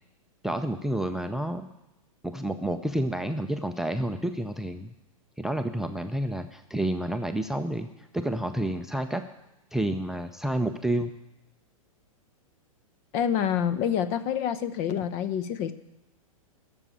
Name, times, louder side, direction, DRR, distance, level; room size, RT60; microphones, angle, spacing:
voice 1, 0.4-1.7 2.2-4.9 5.4-7.9 8.1-9.2 9.7-11.1, right 1 dB, ahead, 9 dB, 0.5 m, -29 dB
voice 2, 13.1-15.7, left 9 dB, 40° left, 13 dB, 0.9 m, -27 dB
12.0 x 7.2 x 9.9 m, 0.92 s
hypercardioid pair, 115°, 18 cm